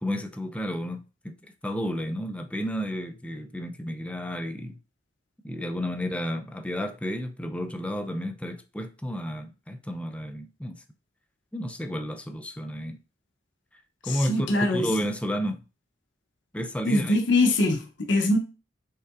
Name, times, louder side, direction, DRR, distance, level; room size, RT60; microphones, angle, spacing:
voice 1, 0.0-1.4 1.6-4.8 5.4-10.8 11.5-13.0 14.0-15.6 16.5-17.2, equal, 5° left, 0.4 m, -31 dB
voice 2, 14.0-14.9 16.8-18.4, left 2 dB, 70° left, 0.7 m, -23 dB
5.6 x 3.7 x 2.4 m
head